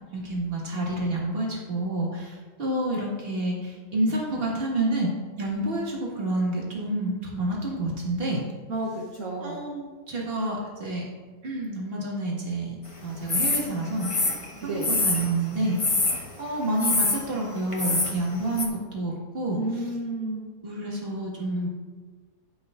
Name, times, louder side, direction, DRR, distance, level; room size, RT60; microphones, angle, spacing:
voice 1, 0.1-5.1 5.4-8.4 9.4-11.1 11.4-14.4 14.6-15.9 16.4-19.6 20.6-21.7, right 1 dB, 40° right, -3 dB, 2.2 m, -29 dB
voice 2, 8.7-9.6 14.6-15.0 19.6-20.4, right 2 dB, 55° right, -5 dB, 1.7 m, -31 dB
sound 1, 13.3-13.6 14.0-15.3 15.8-16.2 16.8-17.2 17.7-18.1 18.6-18.7, left 3 dB, 25° left, 1.0 m, -24 dB
18.5 x 6.2 x 2.6 m, 1.4 s
omnidirectional pair, 1.7 m